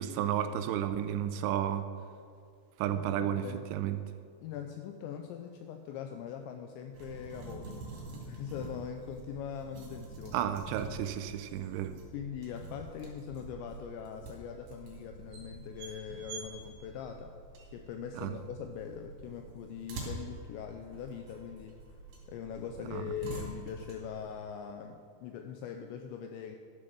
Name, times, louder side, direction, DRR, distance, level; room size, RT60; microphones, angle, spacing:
voice 1, 0.0-1.9 2.8-3.4 3.7-4.0 10.3-11.9 18.2-18.3 22.9-23.0, right 10 dB, 85° right, 9 dB, 2.9 m, -32 dB
voice 2, 2.9-3.6 4.4-10.4 12.1-17.3 17.7-21.8 22.3-26.6, left 8 dB, 85° left, 5 dB, 2.6 m, -42 dB
sound 1, 6.9-24.3, right 3 dB, 60° right, 4.4 m, -46 dB
12.5 x 6.9 x 6.7 m, 2.2 s
omnidirectional pair, 5.7 m